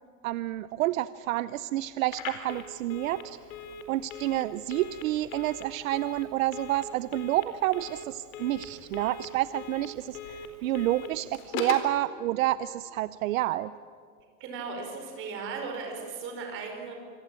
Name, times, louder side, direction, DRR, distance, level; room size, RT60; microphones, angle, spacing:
voice 1, 0.2-3.4 3.9-13.7, right 15 dB, 70° right, 15 dB, 0.7 m, -29 dB
Telephone, 2.1-11.9, left 5 dB, 70° left, 4.3 m, -41 dB
voice 2, 14.4-16.9, right 4 dB, 30° right, 3 dB, 5.0 m, -37 dB
26.5 x 23.0 x 9.0 m, 2.2 s
supercardioid pair, 180°, 42 cm